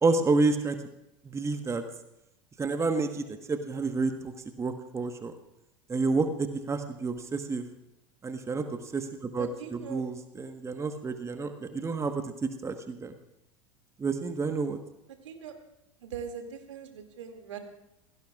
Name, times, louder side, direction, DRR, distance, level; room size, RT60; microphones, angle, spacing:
voice 1, 0.0-0.8 1.2-1.8 2.6-5.3 5.9-7.6 8.2-8.6 8.9-13.1 14.0-14.8, right 3 dB, 15° right, 7 dB, 1.3 m, -29 dB
voice 2, 9.4-10.0 15.2-15.5 16.0-17.6, right 7 dB, 70° right, 5 dB, 2.4 m, -41 dB
27.5 x 18.0 x 2.4 m, 0.87 s
figure-of-eight pair, 75°, 16 cm